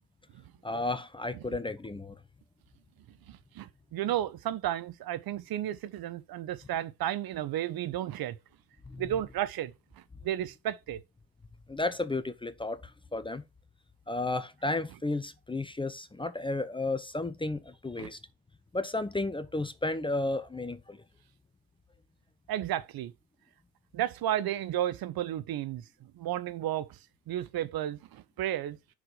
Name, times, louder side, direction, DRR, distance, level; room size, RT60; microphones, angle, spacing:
voice 1, 0.6-2.2 8.9-9.0 11.7-13.4 14.1-18.2 18.7-21.0, left 2 dB, 10° left, 0.8 m, -33 dB
voice 2, 3.3-8.4 9.0-11.0 18.0-18.1 22.5-23.1 23.9-27.0 27.3-28.8, right 12 dB, 50° right, 0.9 m, -33 dB
5.9 x 4.8 x 4.9 m
hypercardioid pair, 75°, 46 cm